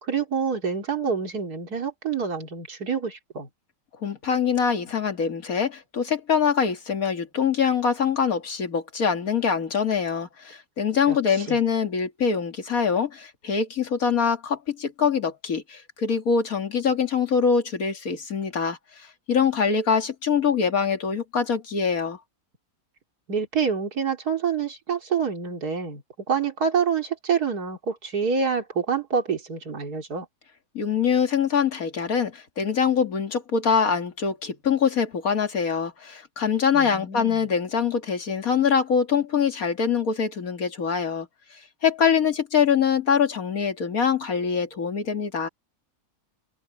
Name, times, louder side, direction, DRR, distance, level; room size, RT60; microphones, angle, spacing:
voice 1, 0.0-3.5 11.1-11.6 23.3-26.0 26.3-30.3 36.7-37.4, right 6 dB, 85° right, 3.3 m, -27 dB
voice 2, 4.0-18.8 19.3-22.2 30.7-41.3 41.8-45.5, left 6 dB, 65° left, 2.4 m, -24 dB
omnidirectional pair, 1.6 m